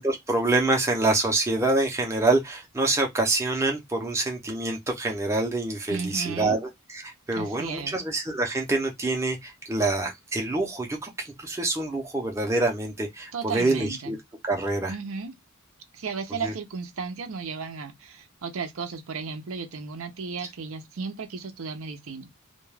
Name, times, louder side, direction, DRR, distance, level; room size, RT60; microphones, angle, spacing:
voice 1, 0.0-14.2 14.4-15.0 16.4-16.5, right 2 dB, 15° right, 0.6 m, -26 dB
voice 2, 5.9-6.5 7.3-8.0 13.3-14.1 14.9-15.3 15.9-22.3, right 5 dB, 70° right, 0.6 m, -34 dB
2.2 x 2.2 x 3.1 m
head